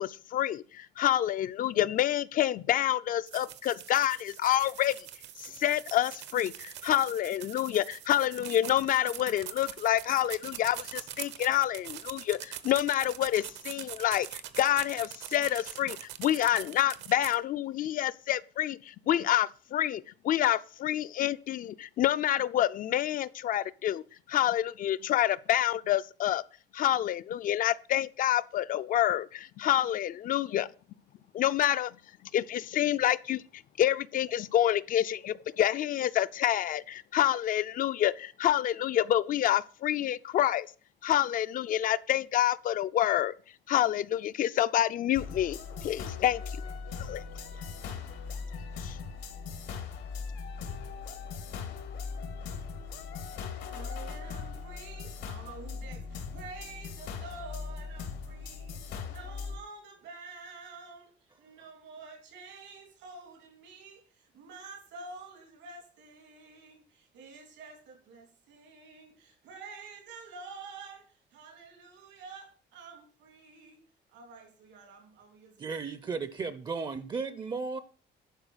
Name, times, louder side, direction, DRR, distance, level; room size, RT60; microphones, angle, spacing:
voice 1, 0.0-4.9 5.4-24.0 24.3-26.4 26.7-30.7 31.3-31.9 32.3-40.7 41.0-43.3 43.7-46.6 47.0-47.2 48.8-49.0, left 12 dB, 50° left, 0.5 m, -28 dB
sound 1, 3.3-17.4, right 11 dB, 75° right, 1.0 m, -43 dB
sound 2, 45.1-59.6, left 5 dB, 90° left, 2.4 m, -39 dB
voice 2, 53.4-73.8 74.1-75.8, right 4 dB, 90° right, 3.3 m, -48 dB
voice 3, 75.6-77.8, right 4 dB, 25° right, 0.5 m, -35 dB
11.5 x 4.8 x 8.0 m
cardioid pair, 165°, 18 cm